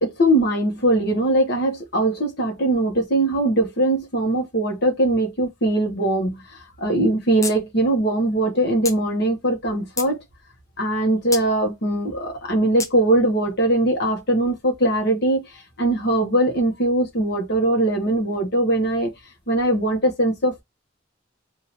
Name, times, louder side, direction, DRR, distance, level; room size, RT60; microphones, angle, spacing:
voice 1, 0.0-10.2 10.8-15.5 15.8-19.1 19.5-20.6, right 1 dB, 55° left, 1.3 m, -21 dB
sound 1, 7.4-7.6 7.9-8.0 8.8-9.0 9.6-10.1 11.3-11.5 12.8-12.9, left 5 dB, 15° left, 0.4 m, -29 dB
3.7 x 2.7 x 3.0 m
head